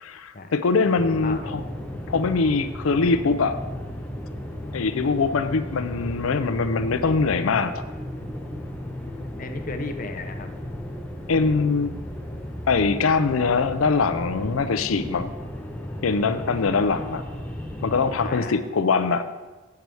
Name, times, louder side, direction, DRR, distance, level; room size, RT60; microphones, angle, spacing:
voice 1, 0.0-1.6 2.1-3.6 4.7-7.7 11.3-11.9 12.7-15.3 16.0-17.2 17.8-19.2, left 4 dB, 80° left, 12 dB, 0.5 m, -22 dB
sound 1, 0.9-18.4, equal, 5° left, 0.7 m, -35 dB
voice 2, 1.1-1.5 9.2-10.5 16.4-16.9 18.2-18.6, left 3 dB, 40° left, 6 dB, 0.7 m, -35 dB
7.7 x 4.7 x 6.9 m, 1.3 s
head